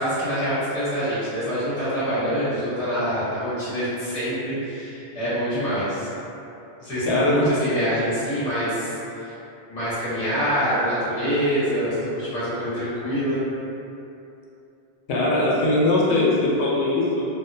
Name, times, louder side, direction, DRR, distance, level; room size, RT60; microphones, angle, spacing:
voice 1, 0.0-6.1 6.8-9.3 9.7-13.4, equal, 40° left, -13 dB, 0.9 m, -25 dB
voice 2, 7.0-7.4 15.1-17.3, left 2 dB, 85° left, -5 dB, 0.9 m, -20 dB
2.5 x 2.1 x 2.5 m, 2.8 s
omnidirectional pair, 1.1 m